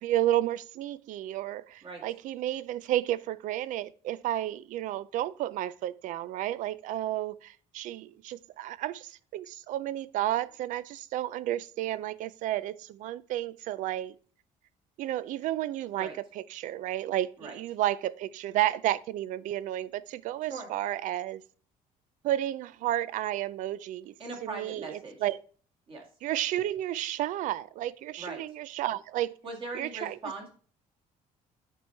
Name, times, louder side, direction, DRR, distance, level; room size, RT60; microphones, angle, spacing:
voice 1, 0.0-14.2 15.0-21.4 22.2-24.1 24.4-25.4 26.2-29.4 29.7-30.2, right 13 dB, 65° right, 0.4 m, -32 dB
voice 2, 24.2-25.2 25.9-26.0 28.2-28.4 29.4-30.5, right 3 dB, 40° right, 2.0 m, -40 dB
9.0 x 4.5 x 4.6 m
cardioid pair, 150°, 14 cm